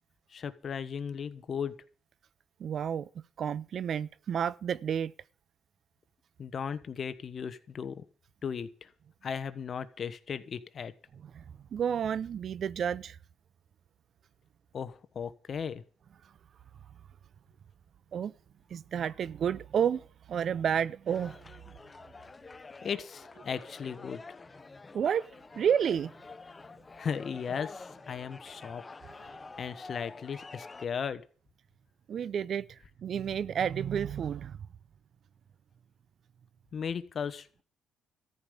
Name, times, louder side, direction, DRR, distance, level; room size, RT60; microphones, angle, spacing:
voice 1, 0.3-1.7 6.4-8.0 8.4-8.9 9.2-10.9 14.7-15.8 22.8-24.4 27.0-28.8 29.2-31.2 36.7-37.6, left 7 dB, 50° left, 1.1 m, -36 dB
voice 2, 2.6-5.1 11.2-11.4 11.7-13.2 16.2-16.3 18.1-18.3 18.7-21.7 24.9-26.1 29.3-29.4 32.1-34.7, right 8 dB, 60° right, 0.5 m, -31 dB
sound 1, 21.1-30.9, left 3 dB, 25° left, 0.7 m, -48 dB
14.0 x 5.3 x 9.4 m
cardioid pair, 90°, 0 cm